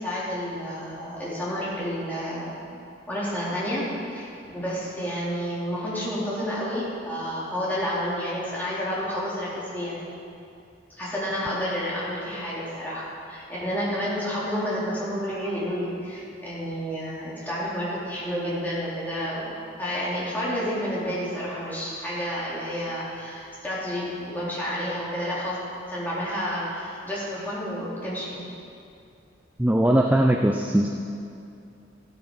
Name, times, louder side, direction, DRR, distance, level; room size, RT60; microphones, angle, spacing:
voice 1, 0.0-2.6 3.1-3.8 4.1-4.3 4.5-10.1 11.0-19.5 19.8-25.6 25.9-28.5, equal, 10° left, -8 dB, 3.7 m, -30 dB
voice 2, 29.6-30.9, right 1 dB, 10° right, 3 dB, 0.5 m, -20 dB
14.0 x 13.5 x 5.5 m, 2.5 s
head